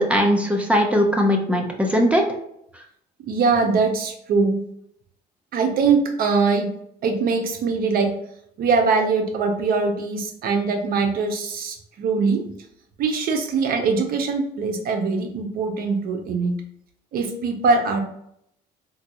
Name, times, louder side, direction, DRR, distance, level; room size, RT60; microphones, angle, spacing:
voice 1, 0.0-2.2, equal, 5° right, 2 dB, 0.6 m, -19 dB
voice 2, 3.3-4.6 5.5-6.7 7.0-8.1 8.6-12.4 13.0-16.6 17.1-18.0, right 4 dB, 60° right, 4 dB, 0.7 m, -22 dB
3.8 x 2.3 x 2.9 m, 0.73 s
cardioid pair, 110°, 17 cm